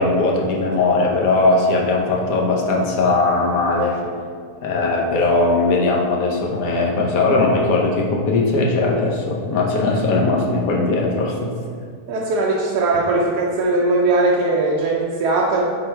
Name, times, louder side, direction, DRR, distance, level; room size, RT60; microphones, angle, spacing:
voice 1, 0.0-4.0 4.6-11.5, left 3 dB, 65° left, -1 dB, 1.2 m, -19 dB
voice 2, 12.1-15.6, right 2 dB, 80° right, -2 dB, 1.2 m, -19 dB
5.2 x 4.1 x 4.4 m, 2.1 s
omnidirectional pair, 1.7 m